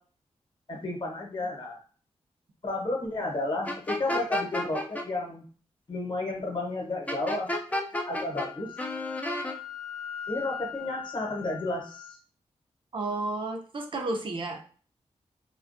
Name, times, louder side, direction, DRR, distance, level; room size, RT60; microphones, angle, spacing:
voice 1, 0.7-1.8 2.6-5.4 5.9-7.5 8.1-8.7 10.3-12.2, left 2 dB, 45° left, -1 dB, 0.9 m, -32 dB
sound 1, 3.7-5.0 7.1-8.5 8.8-9.5, left 1 dB, 15° left, 0.4 m, -31 dB
Wind instrument woodwind instrument, 8.0-12.2, left 8 dB, 85° left, 0.7 m, -41 dB
voice 2, 12.9-14.6, right 2 dB, 50° right, 2 dB, 0.5 m, -32 dB
2.4 x 2.2 x 2.5 m, 0.41 s
wide cardioid pair, 120°, 11 cm